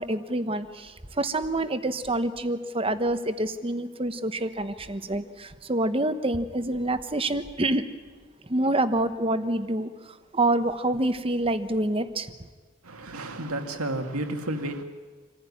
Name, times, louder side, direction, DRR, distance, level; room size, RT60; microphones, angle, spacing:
voice 1, 0.0-7.9 8.4-12.3, right 1 dB, 25° right, 1.1 m, -27 dB
voice 2, 12.8-14.8, right 1 dB, 80° right, 2.3 m, -31 dB
26.5 x 15.5 x 9.8 m
head